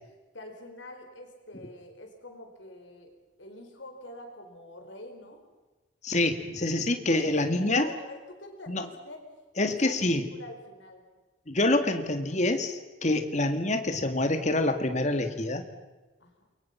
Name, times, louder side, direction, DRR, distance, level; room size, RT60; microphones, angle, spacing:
voice 1, 0.3-3.1 3.4-5.4 7.1-11.2 16.2-16.4, left 1 dB, 85° left, 4 dB, 4.6 m, -46 dB
voice 2, 6.0-7.9 8.7-8.9 9.6-10.3 11.5-15.6, left 2 dB, 40° left, 7 dB, 2.0 m, -26 dB
28.5 x 23.0 x 5.8 m, 1.2 s
head